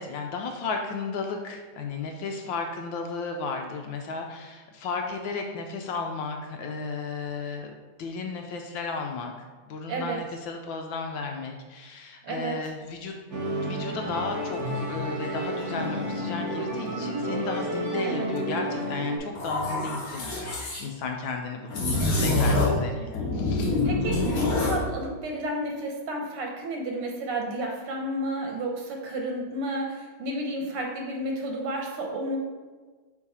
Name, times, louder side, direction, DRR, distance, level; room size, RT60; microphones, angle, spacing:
voice 1, 0.0-7.7 8.0-13.1 13.6-23.7, left 4 dB, 75° left, 3 dB, 1.2 m, -34 dB
voice 2, 9.9-10.2 12.2-12.5 18.0-18.3 23.8-32.4, right 1 dB, 80° right, 1 dB, 2.0 m, -31 dB
Musical instrument, 13.3-19.2, right 1 dB, 55° right, 1.5 m, -31 dB
sound 1, 19.4-20.8 21.7-22.9 23.1-24.8, left 2 dB, 50° left, 1.3 m, -26 dB
5.4 x 4.7 x 4.1 m, 1.3 s
omnidirectional pair, 2.4 m